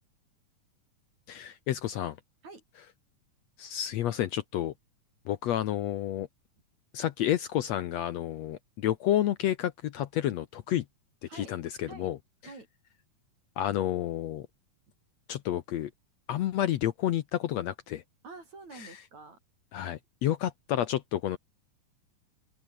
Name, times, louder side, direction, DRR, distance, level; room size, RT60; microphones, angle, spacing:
voice 1, 1.3-2.2 3.6-4.7 5.3-6.3 6.9-10.9 11.3-12.2 13.6-14.5 15.3-15.9 16.3-18.0 19.7-21.4, left 12 dB, 65° left, 1.9 m, -30 dB
voice 2, 18.2-19.4, right 3 dB, 60° right, 8.1 m, -47 dB
open air
omnidirectional pair, 3.7 m